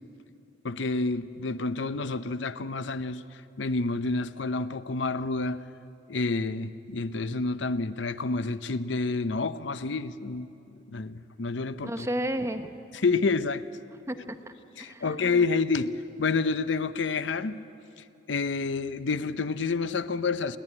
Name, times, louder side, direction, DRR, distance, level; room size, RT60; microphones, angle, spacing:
voice 1, 0.6-5.6 6.1-12.1 13.0-13.6 14.8-15.9 16.2-17.6 18.3-20.6, left 4 dB, 70° left, 14 dB, 0.7 m, -29 dB
voice 2, 11.8-12.7 14.1-14.5 14.8-15.4, equal, 15° right, 8 dB, 0.8 m, -33 dB
29.0 x 11.0 x 9.9 m, 2.9 s
head